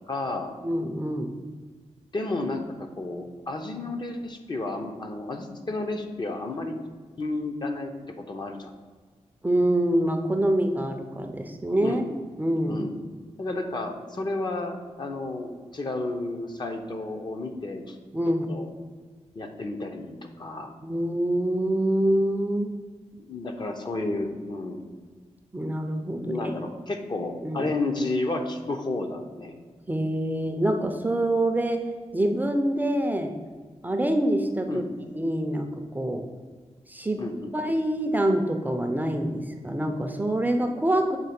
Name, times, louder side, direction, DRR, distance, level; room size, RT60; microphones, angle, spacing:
voice 1, 0.1-0.5 2.1-6.8 7.2-7.9 8.3-8.7 11.8-12.0 12.6-13.0 13.4-18.0 18.5-18.7 19.3-20.7 23.2-24.8 26.2-29.6 34.7-34.9 37.2-37.5, left 2 dB, 40° left, 4 dB, 0.8 m, -32 dB
voice 2, 0.6-1.4 9.4-12.0 12.4-12.8 18.1-18.5 20.8-22.7 25.5-26.4 27.4-27.7 29.9-31.8 32.1-33.3 33.8-34.9 35.1-36.2 36.9-37.2 37.5-41.2, right 1 dB, 15° right, 5 dB, 0.5 m, -25 dB
7.4 x 3.1 x 5.9 m, 1.5 s
wide cardioid pair, 115°, 12 cm